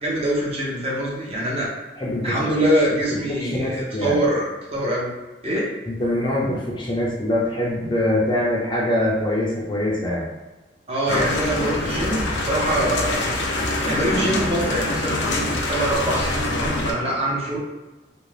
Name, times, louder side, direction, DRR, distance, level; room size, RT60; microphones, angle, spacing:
voice 1, 0.0-1.7 2.2-5.1 5.4-5.7 10.9-13.2 13.8-17.6, right 1 dB, 35° right, -4 dB, 0.7 m, -24 dB
voice 2, 2.0-2.4 3.4-4.2 5.9-10.2 12.5-12.6, left 1 dB, 25° left, -5 dB, 0.5 m, -23 dB
sound 1, 11.1-16.9, left 2 dB, 80° left, 0.5 m, -24 dB
2.6 x 2.1 x 3.2 m, 1.1 s
head